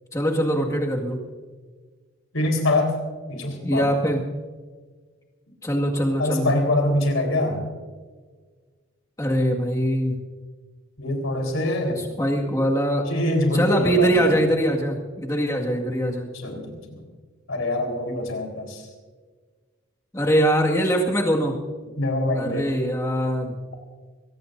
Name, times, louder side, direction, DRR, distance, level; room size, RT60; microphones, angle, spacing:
voice 1, 0.1-1.2 3.6-4.2 5.6-6.5 9.2-10.2 12.2-13.1 13.5-16.3 20.1-21.6 22.3-23.6, right 1 dB, 15° left, 0 dB, 1.9 m, -22 dB
voice 2, 2.3-3.0 3.3-3.9 6.2-7.6 11.0-12.0 13.1-14.4 16.3-17.0 17.5-18.9 22.0-22.7, left 1 dB, 85° left, 3 dB, 4.1 m, -24 dB
23.0 x 18.0 x 2.7 m, 1.5 s
head